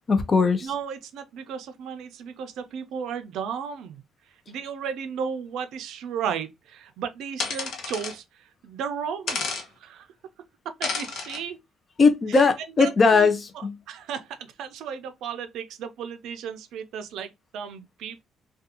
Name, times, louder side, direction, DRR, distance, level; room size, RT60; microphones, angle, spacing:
voice 1, 0.1-0.7 12.0-13.8, left 4 dB, 30° left, 0.4 m, -19 dB
voice 2, 0.6-4.0 4.5-10.1 10.6-11.6 12.3-12.4 12.8-18.2, right 7 dB, 75° right, 0.4 m, -34 dB
sound 1, 7.4-8.1 9.3-9.6 10.8-11.4, left 4 dB, 55° left, 0.8 m, -30 dB
2.5 x 2.3 x 2.7 m
cardioid pair, 150°, 0 cm